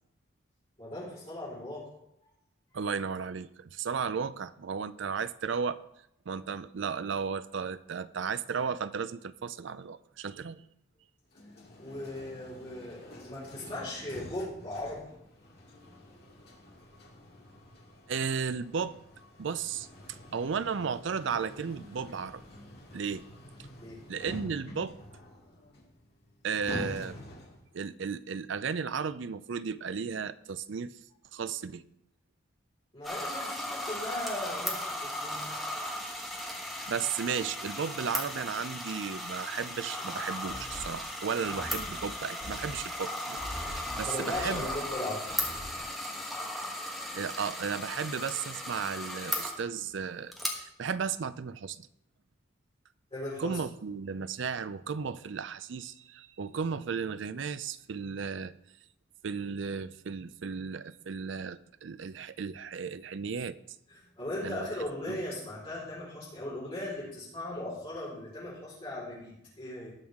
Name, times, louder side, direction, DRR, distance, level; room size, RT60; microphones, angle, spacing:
voice 1, 0.8-1.8 11.8-15.0 23.8-24.0 32.9-35.5 44.0-45.2 45.6-45.8 46.2-46.4 53.1-53.6 63.9-69.9, left 1 dB, 30° left, -9 dB, 4.6 m, -38 dB
voice 2, 2.7-5.8 6.3-10.6 18.1-19.0 19.4-22.4 22.9-23.2 24.1-24.9 26.4-27.2 27.7-30.9 31.3-31.8 36.9-44.7 47.2-51.9 53.4-58.5 59.2-63.6 64.4-64.7 65.1-65.2, right 6 dB, 70° right, 14 dB, 0.5 m, -34 dB
sound 1, 11.3-27.7, left 1 dB, 50° left, 2.2 m, -47 dB
sound 2, 33.0-49.6 50.3-50.5, left 1 dB, ahead, 1.3 m, -36 dB
sound 3, 40.5-41.0 41.4-42.1 42.4-42.9 43.4-44.1 44.3-44.8 45.3-45.8, left 1 dB, 40° right, 4.5 m, -43 dB
18.5 x 6.3 x 3.6 m, 0.79 s
head